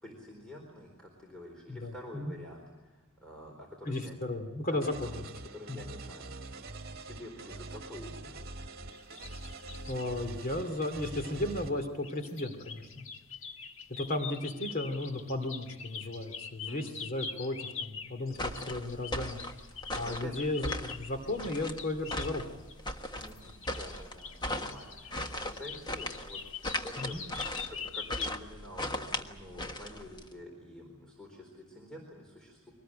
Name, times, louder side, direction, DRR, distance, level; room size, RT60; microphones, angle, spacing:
voice 1, 0.0-4.2 4.7-4.9 5.5-6.4 7.0-8.4 16.6-16.9 19.8-20.3 21.2-21.4 23.2-26.4 26.7-27.2 27.7-32.7, equal, 5° left, -1 dB, 4.2 m, -48 dB
voice 2, 1.7-2.4 3.8-5.2 5.7-5.9 9.9-13.0 13.9-19.4 19.7-22.5 27.0-27.2, left 2 dB, 45° left, 6 dB, 2.6 m, -35 dB
sound 1, 4.8-11.7, right 2 dB, 50° right, 2.0 m, -44 dB
sound 2, 8.9-10.1 11.5-28.3, left 6 dB, 65° left, 1.6 m, -44 dB
sound 3, 18.3-30.3, left 1 dB, 20° left, 1.4 m, -38 dB
24.0 x 19.5 x 8.9 m, 1.2 s
head